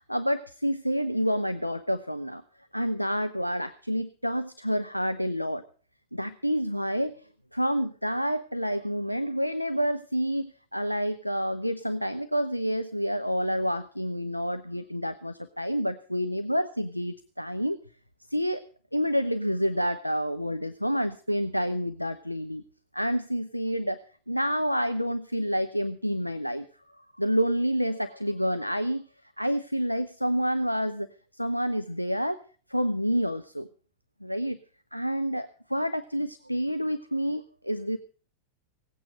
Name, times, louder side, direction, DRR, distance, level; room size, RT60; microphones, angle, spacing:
voice 1, 0.0-2.4 2.7-5.6 6.1-17.8 18.3-18.6 18.9-22.6 22.9-24.0 24.3-26.6 27.2-29.1 29.4-31.1 31.3-32.4 32.7-33.7 34.2-34.6 34.9-38.0, equal, 90° left, 12 dB, 0.6 m, -28 dB
18.0 x 8.7 x 6.3 m, 0.40 s
figure-of-eight pair, 90°, 0 cm